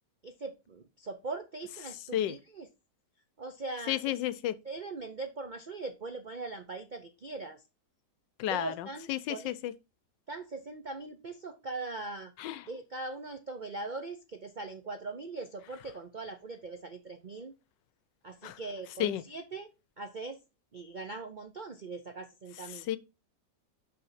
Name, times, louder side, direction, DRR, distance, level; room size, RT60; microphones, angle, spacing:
voice 1, 0.2-2.7 3.4-4.2 4.6-7.6 8.5-9.5 10.3-12.3 12.7-17.5 18.2-19.7 20.0-20.4 20.7-22.9, right 3 dB, 70° right, 0.4 m, -41 dB
voice 2, 3.9-4.5 8.4-9.7 12.4-12.6 18.4-18.6 19.0-19.2 22.9-23.0, left 12 dB, 85° left, 1.3 m, -32 dB
5.7 x 5.6 x 5.7 m
omnidirectional pair, 2.0 m